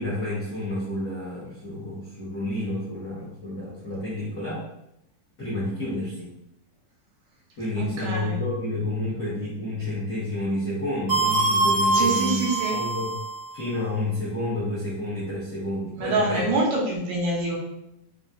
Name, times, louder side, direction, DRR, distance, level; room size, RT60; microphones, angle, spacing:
voice 1, 0.0-4.6 5.4-6.3 7.6-12.4 12.7-13.1 13.5-16.4, left 1 dB, 85° left, -9 dB, 0.8 m, -30 dB
voice 2, 7.8-8.4 11.9-12.8 16.0-17.6, right 2 dB, 75° right, -3 dB, 2.2 m, -25 dB
sound 1, 11.1-13.5, right 2 dB, 55° right, 0.4 m, -24 dB
6.8 x 2.6 x 2.4 m, 0.83 s
omnidirectional pair, 3.6 m